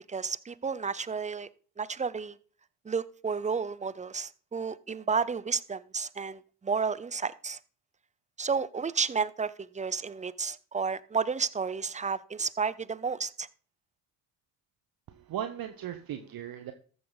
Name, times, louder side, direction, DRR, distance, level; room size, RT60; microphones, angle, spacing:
voice 1, 0.0-1.5 1.8-2.4 2.8-7.6 8.4-13.5, right 5 dB, 15° right, 0.6 m, -32 dB
voice 2, 15.1-16.7, right 10 dB, 55° right, 1.0 m, -37 dB
13.5 x 6.8 x 4.0 m
hypercardioid pair, 55°, 42 cm